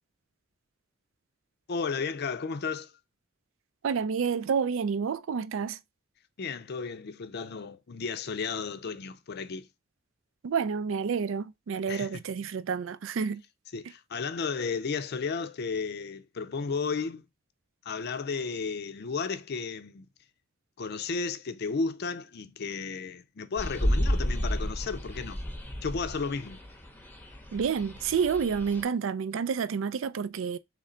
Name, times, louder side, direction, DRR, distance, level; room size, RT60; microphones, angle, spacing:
voice 1, 1.7-2.9 6.4-9.7 11.9-12.2 13.7-17.2 17.8-20.1 20.8-25.4 25.8-26.6, left 5 dB, 55° left, 0.5 m, -33 dB
voice 2, 3.8-5.8 10.4-13.4 27.5-30.6, right 6 dB, 70° right, 0.4 m, -29 dB
sound 1, 23.6-28.8, equal, 10° left, 0.7 m, -32 dB
3.8 x 3.2 x 4.3 m
head